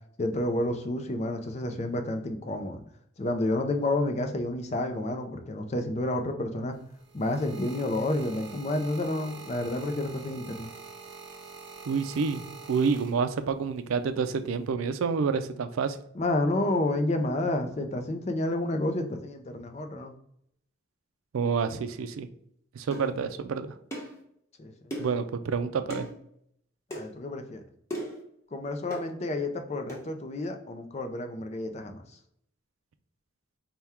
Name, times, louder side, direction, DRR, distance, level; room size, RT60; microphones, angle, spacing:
voice 1, 0.2-2.8 3.2-6.8 7.1-10.7 16.1-20.1 24.6-24.9 26.9-27.6 28.5-32.0, left 1 dB, 30° left, 6 dB, 0.4 m, -30 dB
sound 1, 6.7-13.6 14.4-14.7, right 4 dB, 65° right, 0.8 m, -46 dB
voice 2, 11.9-16.0 21.3-22.3 22.7-23.7 25.0-26.1, right 5 dB, 85° right, 10 dB, 0.4 m, -28 dB
sound 2, 22.9-23.1 23.9-24.2 24.9-25.2 25.9-26.1 26.9-27.1 27.9-28.2 28.9-29.1 29.9-30.0, equal, 15° left, 1.0 m, -36 dB
4.3 x 2.2 x 3.4 m, 0.72 s
head